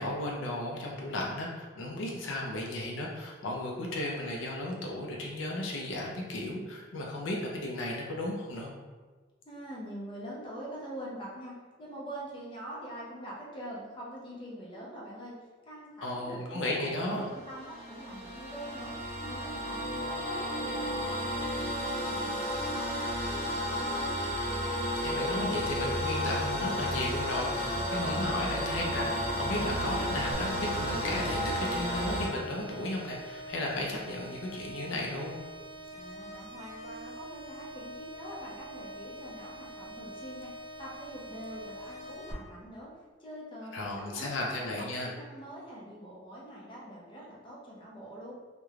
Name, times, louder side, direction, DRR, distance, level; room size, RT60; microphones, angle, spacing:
voice 1, 0.0-8.7 16.0-17.3 25.0-35.4 43.7-45.1, left 1 dB, 80° left, -1 dB, 0.4 m, -34 dB
voice 2, 9.5-15.3 15.6-18.9 19.2-24.2 35.9-40.5 40.8-42.9 43.2-48.3, right 1 dB, 25° left, -5 dB, 0.6 m, -44 dB
sound 1, 17.0-32.3, equal, 50° right, 1.0 m, -32 dB
sound 2, 30.3-42.3, right 1 dB, 25° right, 0.4 m, -45 dB
3.0 x 2.1 x 2.3 m, 1.3 s
head